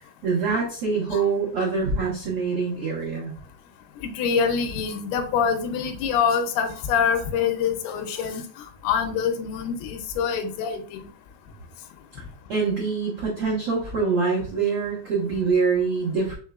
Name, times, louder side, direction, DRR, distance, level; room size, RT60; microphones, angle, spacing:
voice 1, 0.2-3.3 12.5-16.4, right 4 dB, 80° right, -6 dB, 1.2 m, -24 dB
voice 2, 4.0-11.1, left 6 dB, 80° left, 6 dB, 2.5 m, -25 dB
5.7 x 3.3 x 2.3 m, 0.42 s
omnidirectional pair, 4.5 m